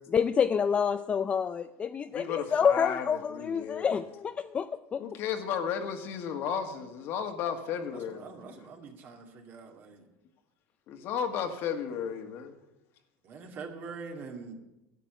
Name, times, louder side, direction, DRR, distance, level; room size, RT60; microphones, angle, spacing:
voice 1, 0.1-5.0, left 7 dB, 25° left, 10 dB, 0.4 m, -28 dB
voice 2, 2.1-4.0 5.0-8.6 9.3-9.4 10.9-12.5, left 7 dB, 55° left, 6 dB, 1.7 m, -34 dB
voice 3, 7.9-10.1 13.2-14.5, right 4 dB, 45° right, 4 dB, 2.2 m, -44 dB
12.0 x 8.3 x 8.0 m, 0.94 s
supercardioid pair, 130°, 5 cm